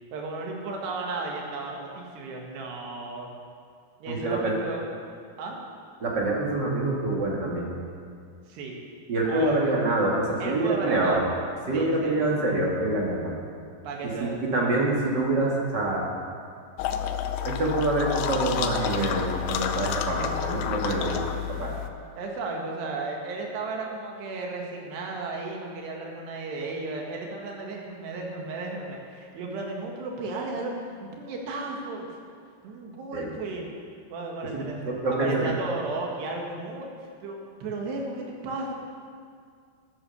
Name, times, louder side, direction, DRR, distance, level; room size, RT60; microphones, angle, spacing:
voice 1, 0.1-3.3 4.0-4.8 5.4-5.6 8.5-8.8 9.3-9.8 10.4-11.3 11.7-12.2 13.8-14.4 22.2-32.0 32.6-33.7 34.1-34.8 35.1-36.9 37.2-38.7, right 3 dB, 75° right, 0 dB, 3.8 m, -34 dB
voice 2, 4.1-4.6 6.0-7.7 9.1-11.2 11.7-13.3 14.0-16.1 17.4-21.7 33.1-33.3 34.5-35.5, right 2 dB, 50° right, -3 dB, 1.3 m, -26 dB
sound 1, 16.8-21.9, left 9 dB, 85° left, 2.9 m, -30 dB
13.5 x 9.5 x 7.0 m, 2.2 s
omnidirectional pair, 4.9 m